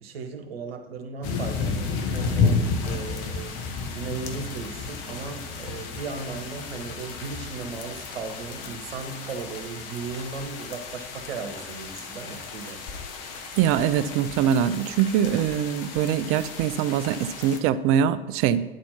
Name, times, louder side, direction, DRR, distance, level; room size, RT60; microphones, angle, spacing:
voice 1, 0.0-13.0, right 5 dB, 75° right, 5 dB, 1.0 m, -36 dB
sound 1, 1.2-17.6, left 4 dB, 55° left, 1.1 m, -32 dB
voice 2, 13.6-18.6, right 9 dB, 50° right, 14 dB, 0.5 m, -23 dB
9.5 x 4.2 x 5.7 m, 1.1 s
figure-of-eight pair, 70°, 30 cm